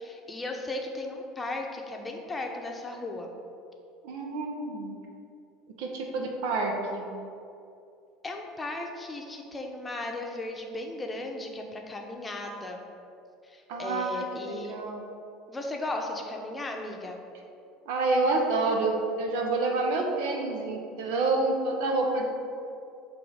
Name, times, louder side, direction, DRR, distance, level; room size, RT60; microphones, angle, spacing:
voice 1, 0.0-3.3 8.2-12.8 13.4-14.8 15.5-17.2, left 2 dB, 20° left, 2 dB, 0.8 m, -36 dB
voice 2, 4.0-5.0 5.8-7.1 13.7-15.0 17.9-22.2, right 3 dB, 70° right, 1 dB, 0.9 m, -28 dB
7.7 x 2.7 x 4.9 m, 2.6 s
hypercardioid pair, 75°, 0 cm